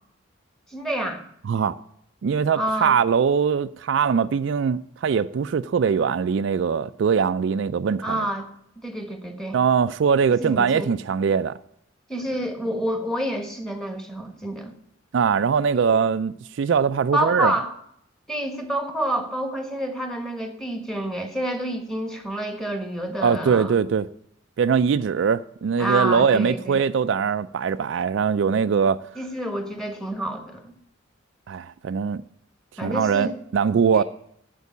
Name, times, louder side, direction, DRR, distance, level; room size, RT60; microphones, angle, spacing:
voice 1, 0.7-1.2 2.6-3.0 8.0-8.5 8.8-9.6 10.3-10.9 12.1-14.7 17.1-17.7 18.3-23.8 25.8-26.8 29.2-30.7 32.8-33.3 33.9-34.0, right 1 dB, 5° left, 1.3 m, -28 dB
voice 2, 2.2-8.3 9.5-11.6 15.1-17.5 23.2-24.1 24.6-29.0 31.5-32.2 32.8-34.0, right 6 dB, 65° right, 0.3 m, -22 dB
8.2 x 7.6 x 8.4 m
head